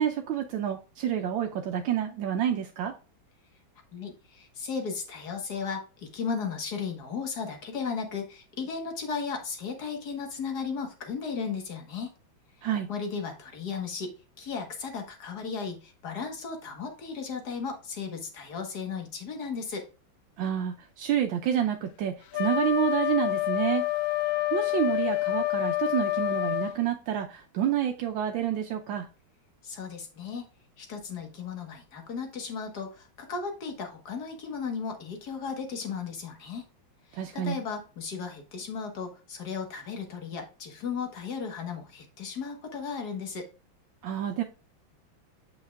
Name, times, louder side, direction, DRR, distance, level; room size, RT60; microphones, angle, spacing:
voice 1, 0.0-2.9 12.6-12.9 20.4-23.8 24.5-29.1 37.1-37.6 44.0-44.4, right 10 dB, 80° right, 3 dB, 1.4 m, -28 dB
voice 2, 3.9-12.1 12.9-19.9 29.6-30.5 30.8-36.7 37.1-43.5, left 5 dB, 55° left, 4 dB, 1.8 m, -35 dB
Wind instrument woodwind instrument, 22.3-26.8, left 16 dB, 85° left, 1.4 m, -27 dB
8.0 x 6.3 x 2.3 m, 0.34 s
omnidirectional pair, 2.2 m